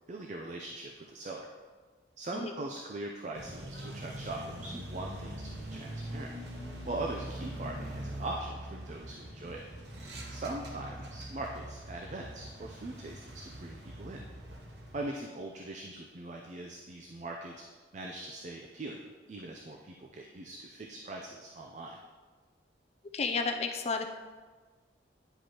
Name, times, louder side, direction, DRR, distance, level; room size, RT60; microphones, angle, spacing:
voice 1, 0.1-1.5 2.2-6.3 6.9-9.7 10.3-14.2 14.9-17.6 17.9-22.0, right 2 dB, 40° right, 1 dB, 0.4 m, -41 dB
sound 1, 3.3-15.0, right 1 dB, 60° right, 1.0 m, -43 dB
voice 2, 23.1-24.1, left 4 dB, 35° left, 5 dB, 0.4 m, -31 dB
9.8 x 5.2 x 3.0 m, 1.4 s
head